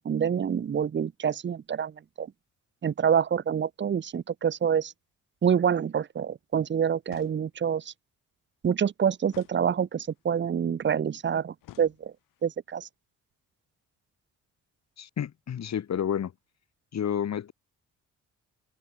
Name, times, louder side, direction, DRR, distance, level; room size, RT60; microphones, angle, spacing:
voice 1, 0.0-1.9 2.2-2.3 2.8-4.9 5.4-7.8 8.6-12.1 12.4-12.9, right 8 dB, 35° right, 0.8 m, -26 dB
sound 1, 7.0-7.8 9.3-10.2 11.6-12.5, left 14 dB, 90° left, 3.1 m, -53 dB
voice 2, 15.0-16.3 16.9-17.5, left 9 dB, 55° left, 2.3 m, -30 dB
cardioid pair, 90°, 32 cm